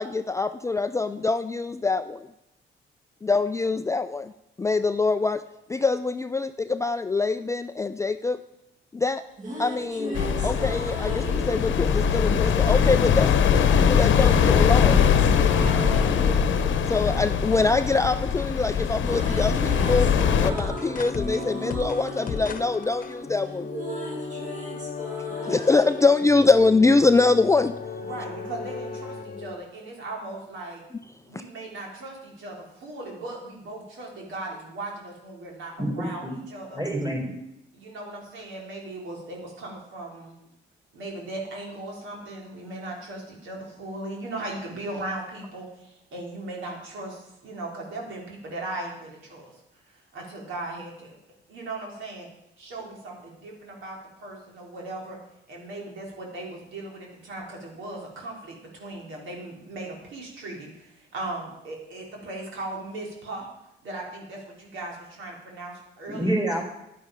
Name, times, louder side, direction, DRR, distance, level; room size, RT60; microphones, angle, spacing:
voice 1, 0.0-2.3 3.2-4.3 4.6-5.4 5.7-8.4 8.9-9.2 9.6-10.2 10.4-15.0 16.8-20.1 20.4-23.7 25.4-27.7, left 3 dB, 15° left, 10 dB, 0.4 m, -24 dB
sound 1, 9.2-13.3 14.2-18.4 18.7-27.2, equal, 40° right, 2.7 m, -36 dB
sound 2, 10.1-20.5, left 7 dB, 70° left, 0.9 m, -21 dB
voice 2, 15.5-15.9 28.0-30.8 31.3-36.8 37.7-40.3 40.9-51.1 51.5-52.3 52.6-55.2 55.5-63.5 63.8-66.3, right 2 dB, 75° right, -1 dB, 3.2 m, -38 dB
sound 3, 20.2-29.6, left 4 dB, 45° left, 1.0 m, -35 dB
voice 3, 35.8-36.3 36.7-37.4 66.1-66.6, right 1 dB, 20° right, 0 dB, 4.4 m, -27 dB
10.5 x 9.6 x 5.1 m, 0.87 s
cardioid pair, 90°, 20 cm